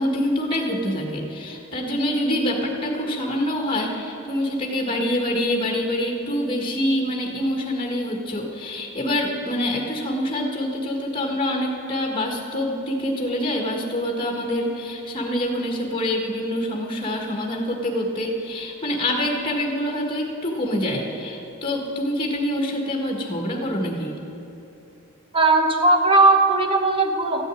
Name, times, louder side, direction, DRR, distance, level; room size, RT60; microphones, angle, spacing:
voice 1, 0.0-24.1, left 1 dB, 25° left, 1 dB, 1.6 m, -25 dB
voice 2, 25.3-27.4, right 3 dB, 25° right, 3 dB, 1.1 m, -18 dB
14.5 x 6.4 x 9.7 m, 3.0 s
head